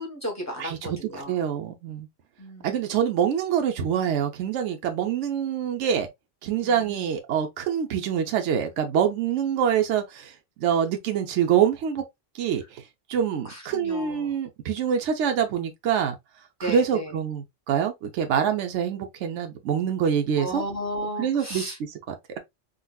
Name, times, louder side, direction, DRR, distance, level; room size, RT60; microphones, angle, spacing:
voice 1, 0.0-1.3 2.4-2.8 6.6-7.1 13.4-14.4 16.6-17.1 20.4-21.8, equal, 15° left, 1.0 m, -34 dB
voice 2, 0.6-2.1 2.6-6.1 6.4-10.3 10.6-12.0 12.3-12.8 13.1-16.1 16.6-20.6 21.2-22.1, right 8 dB, 70° right, 1.0 m, -25 dB
3.9 x 2.4 x 2.2 m
omnidirectional pair, 1.3 m